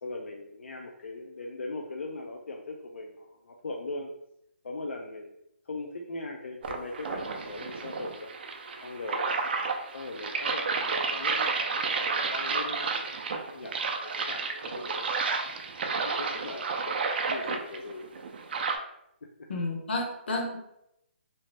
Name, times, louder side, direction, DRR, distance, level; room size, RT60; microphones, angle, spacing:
voice 1, 0.0-4.1 4.6-5.4 5.6-8.3 8.8-9.5 9.9-13.7 14.0-15.1 15.5-15.6 16.0-17.0 17.3-18.1, left 2 dB, 85° left, 1 dB, 0.4 m, -40 dB
sound 1, 6.6-18.8, right 4 dB, 55° right, 0.4 m, -31 dB
voice 2, 19.5-20.6, left 2 dB, 65° left, 0 dB, 0.8 m, -31 dB
2.7 x 2.1 x 3.2 m, 0.80 s
hypercardioid pair, 155°, 7 cm